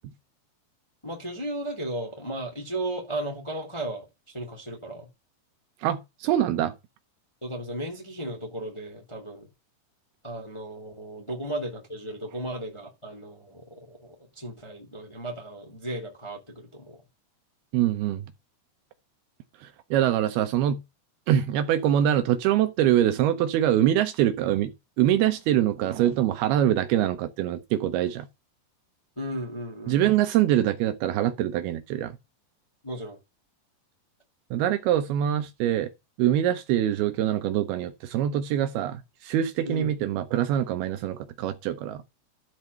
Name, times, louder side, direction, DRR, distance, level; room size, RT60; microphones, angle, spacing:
voice 1, 1.0-5.1 7.4-9.5 10.2-17.0 29.2-30.0 32.8-33.2 39.7-40.0, right 1 dB, 10° left, 1.8 m, -35 dB
voice 2, 5.8-6.7 17.7-18.2 19.6-20.8 21.3-24.7 25.0-28.3 29.9-32.1 34.5-35.9 36.2-42.0, right 11 dB, 75° right, 2.5 m, -24 dB
12.5 x 4.4 x 6.7 m
omnidirectional pair, 4.9 m